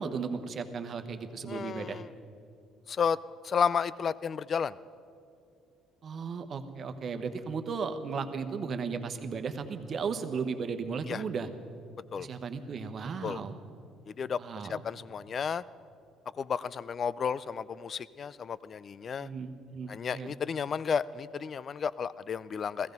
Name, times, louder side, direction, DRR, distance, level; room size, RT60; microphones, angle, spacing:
voice 1, 0.0-2.0 6.0-11.5 12.2-13.6 14.4-14.8 19.2-20.3, right 5 dB, 50° right, 8 dB, 1.1 m, -35 dB
voice 2, 1.5-2.1 2.9-3.2 3.4-4.8 11.1-11.2 12.1-12.3 13.2-13.4 14.1-14.4 14.7-15.6 16.4-19.3 19.9-22.9, left 6 dB, 45° left, 19 dB, 0.4 m, -32 dB
15.5 x 14.5 x 5.3 m, 2.4 s
supercardioid pair, 70°, 0 cm